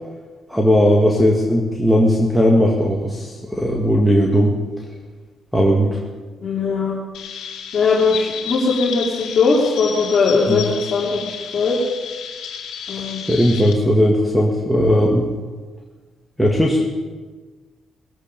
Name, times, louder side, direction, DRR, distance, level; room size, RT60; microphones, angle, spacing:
voice 1, 0.5-4.5 5.5-6.0 10.5-10.6 13.3-15.3 16.4-16.8, equal, ahead, -1 dB, 1.8 m, -17 dB
voice 2, 6.4-7.0 7.7-11.8 12.9-13.3, left 4 dB, 50° left, -5 dB, 2.7 m, -19 dB
Chirp tweet, 7.1-13.7, left 7 dB, 80° left, 2.2 m, -32 dB
20.5 x 8.3 x 5.2 m, 1.4 s
cardioid pair, 90°, 0 cm